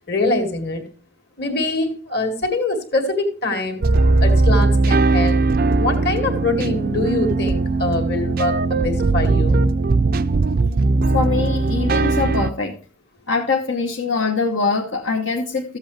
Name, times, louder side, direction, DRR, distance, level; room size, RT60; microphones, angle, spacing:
voice 1, 0.1-0.8 1.4-3.8 4.2-5.4 5.8-9.6, left 2 dB, 50° left, 4 dB, 2.3 m, -23 dB
sound 1, 3.8-12.5, right 3 dB, 45° right, 0.4 m, -18 dB
voice 2, 11.1-12.8 13.3-15.8, left 4 dB, 70° left, 1 dB, 1.1 m, -23 dB
14.0 x 7.9 x 3.3 m, 0.40 s
head